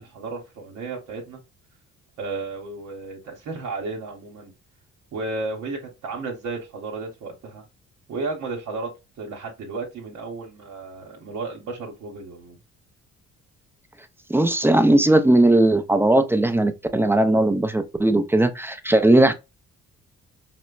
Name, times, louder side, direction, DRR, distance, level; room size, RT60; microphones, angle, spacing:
voice 1, 0.0-1.4 2.2-4.5 5.1-7.6 8.1-8.9 9.2-12.6, right 3 dB, 80° right, 0.9 m, -33 dB
voice 2, 14.3-19.3, right 1 dB, 10° right, 0.4 m, -18 dB
4.2 x 2.1 x 2.3 m
cardioid pair, 90°, 30 cm